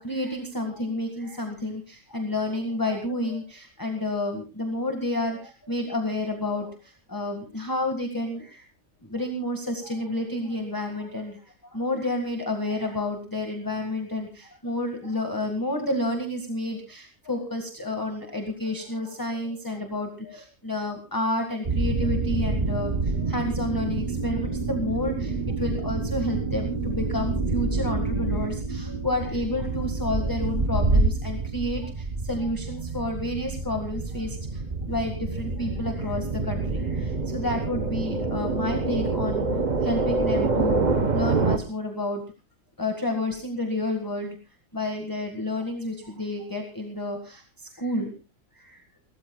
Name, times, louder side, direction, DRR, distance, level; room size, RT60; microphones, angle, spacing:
voice 1, 0.0-8.7 9.0-39.5 39.8-40.9 41.1-42.2 42.8-44.4 44.7-48.1 48.5-48.8, left 1 dB, 15° left, 3 dB, 1.8 m, -30 dB
sound 1, 21.6-41.6, right 3 dB, 35° right, 1.1 m, -27 dB
29.5 x 13.5 x 2.3 m, 0.30 s
omnidirectional pair, 1.5 m